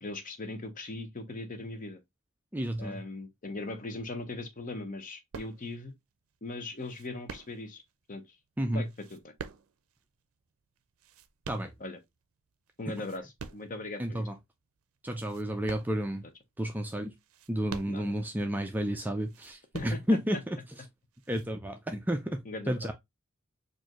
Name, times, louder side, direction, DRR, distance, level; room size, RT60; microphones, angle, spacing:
voice 1, 0.0-2.0 2.8-5.9 6.4-7.8 8.1-8.4 8.7-9.3 11.8-12.0 12.8-14.3 17.9-18.1 19.7-20.4 22.4-22.9, left 2 dB, 40° left, 0.7 m, -39 dB
voice 2, 2.5-3.0 8.6-8.8 11.5-11.7 14.0-14.3 15.0-16.2 16.6-17.1 17.5-20.6 21.3-22.4 22.7-22.9, equal, 10° right, 0.3 m, -31 dB
sound 1, 5.3-5.9 6.8-7.9 8.8-10.0 10.8-12.2 12.7-13.8 14.3-14.4 15.1-16.4 17.1-18.3 19.2-20.4 21.1-21.5, right 5 dB, 85° right, 0.5 m, -46 dB
4.3 x 2.5 x 2.9 m
head